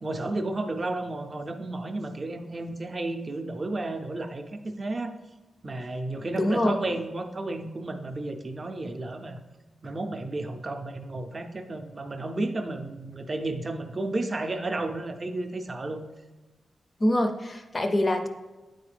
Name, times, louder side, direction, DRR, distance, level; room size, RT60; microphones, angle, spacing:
voice 1, 0.0-4.5 4.8-5.2 5.6-9.4 9.8-16.0, right 2 dB, 30° right, 6 dB, 0.5 m, -32 dB
voice 2, 6.3-6.8 17.0-18.3, left 1 dB, 25° left, 5 dB, 0.4 m, -24 dB
9.3 x 3.9 x 3.3 m, 1.2 s
wide cardioid pair, 155°, 0 cm